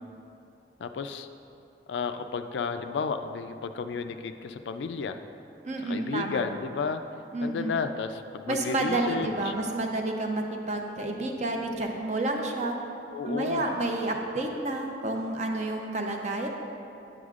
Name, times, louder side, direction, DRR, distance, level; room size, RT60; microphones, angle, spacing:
voice 1, 0.8-1.3 1.9-5.2 5.9-7.0 7.4-9.5 13.1-13.6, left 5 dB, 75° left, 8 dB, 0.3 m, -32 dB
voice 2, 5.6-6.4 7.3-7.8 8.5-12.8 13.2-16.5, right 2 dB, 40° right, 2 dB, 0.6 m, -30 dB
9.2 x 7.8 x 2.4 m, 2.7 s
head